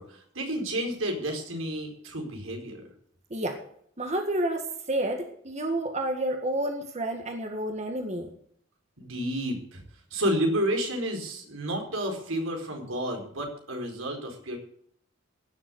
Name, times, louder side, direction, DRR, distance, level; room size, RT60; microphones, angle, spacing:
voice 1, 0.0-2.9 9.0-9.8 10.1-14.6, equal, 85° right, 3 dB, 4.5 m, -31 dB
voice 2, 4.0-8.3, right 1 dB, 35° right, 4 dB, 1.8 m, -30 dB
16.5 x 7.5 x 8.5 m, 0.66 s
head